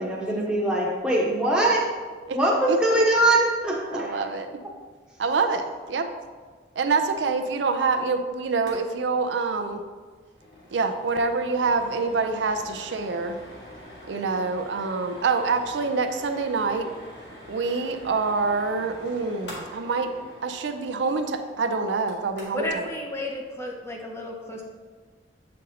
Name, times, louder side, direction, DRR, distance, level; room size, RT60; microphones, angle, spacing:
voice 1, 0.0-1.9 2.3-4.3, right 1 dB, 5° right, -4 dB, 1.0 m, -22 dB
voice 2, 2.7-3.0 3.9-4.6 5.2-6.1 6.8-9.8 10.7-13.4 14.1-16.9 17.5-20.1 20.4-22.9, right 4 dB, 85° right, 6 dB, 0.5 m, -26 dB
sound 1, 8.7-8.8 9.1-9.2 9.5-9.7 10.1-22.7, equal, 75° left, 1.7 m, -45 dB
voice 3, 22.5-24.6, left 1 dB, 15° left, 0 dB, 0.6 m, -32 dB
7.5 x 5.3 x 2.8 m, 1.5 s
head